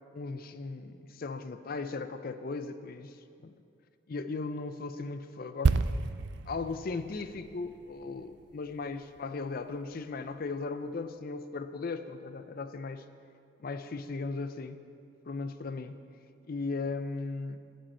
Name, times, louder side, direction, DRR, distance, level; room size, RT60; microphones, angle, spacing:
voice 1, 0.1-3.5 4.1-5.8 6.5-13.1 13.6-14.8 15.3-16.0 16.5-17.6, left 3 dB, 50° left, 11 dB, 0.5 m, -37 dB
sound 1, 5.6-9.3 9.6-9.8, right 4 dB, 60° right, 0.4 m, -31 dB
11.0 x 9.1 x 4.4 m, 2.5 s
head